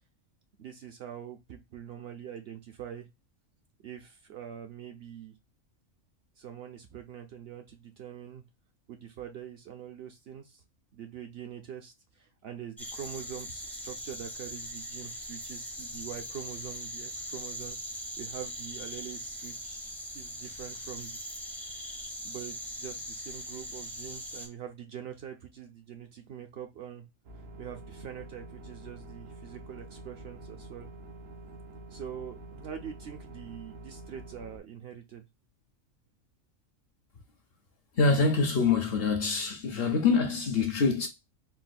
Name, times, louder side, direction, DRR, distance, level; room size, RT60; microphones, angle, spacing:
voice 1, 0.6-3.1 3.8-5.3 6.4-8.4 8.9-10.6 10.9-21.2 22.2-27.1 27.6-30.9 31.9-35.3, right 9 dB, 60° right, 0.7 m, -44 dB
sound 1, 12.8-24.5, equal, ahead, 0.4 m, -40 dB
sound 2, 27.2-34.6, right 2 dB, 80° right, 1.1 m, -47 dB
voice 2, 38.0-41.1, left 4 dB, 60° left, 0.7 m, -25 dB
3.9 x 2.2 x 2.5 m
omnidirectional pair, 1.4 m